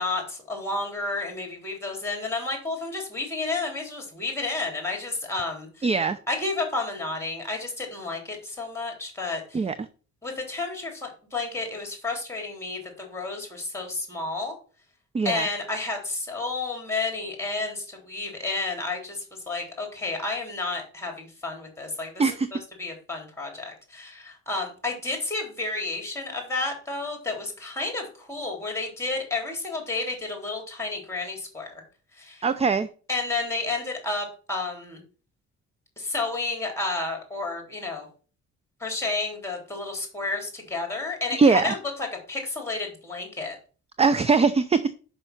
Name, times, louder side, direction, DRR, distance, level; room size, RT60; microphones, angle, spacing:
voice 1, 0.0-5.9 6.3-9.6 10.2-14.5 15.2-22.1 22.5-31.7 32.2-32.4 33.1-35.0 36.0-38.1 38.8-43.6, left 3 dB, 10° left, 3.5 m, -31 dB
voice 2, 5.8-6.2 9.5-9.9 15.1-15.5 22.2-22.5 32.4-32.9 41.3-41.7 44.0-44.9, right 4 dB, 20° right, 0.5 m, -21 dB
5.7 x 5.5 x 6.0 m
cardioid pair, 90°, 30 cm